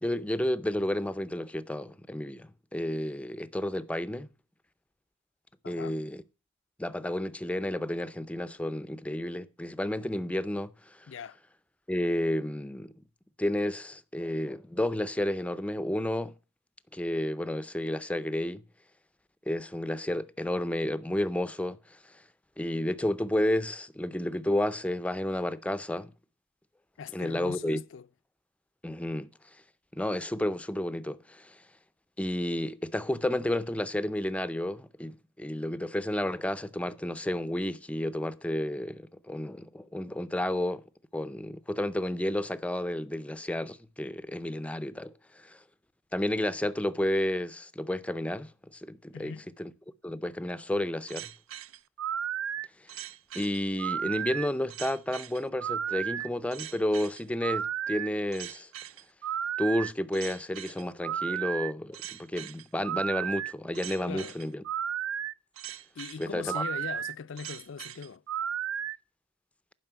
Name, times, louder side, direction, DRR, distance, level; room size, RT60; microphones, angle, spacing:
voice 1, 0.0-4.3 5.7-6.2 6.8-11.1 11.9-12.9 13.4-16.3 16.9-18.6 19.5-22.2 22.6-26.1 27.1-27.8 28.8-29.3 29.9-31.6 32.2-40.8 41.1-45.6 46.1-49.3 49.6-49.7 50.0-51.3 53.3-58.7 59.6-64.6 66.2-66.6, left 1 dB, 5° left, 0.4 m, -31 dB
voice 2, 5.6-6.0 11.1-11.4 27.0-28.1 49.1-49.5 64.1-64.4 66.0-68.2, left 6 dB, 65° left, 0.4 m, -40 dB
sound 1, 51.1-69.0, right 9 dB, 75° right, 0.4 m, -34 dB
11.0 x 5.4 x 6.8 m
head